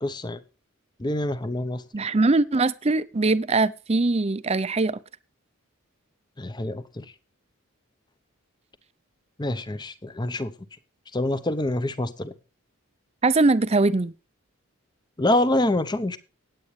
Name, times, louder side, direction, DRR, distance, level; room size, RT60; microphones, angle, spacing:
voice 1, 0.0-0.4 1.0-1.8 6.4-7.0 9.4-10.5 11.1-12.3 15.2-16.2, left 1 dB, 20° left, 0.7 m, -26 dB
voice 2, 1.9-5.0 13.2-14.1, right 3 dB, 30° right, 0.5 m, -22 dB
18.0 x 8.5 x 3.2 m
head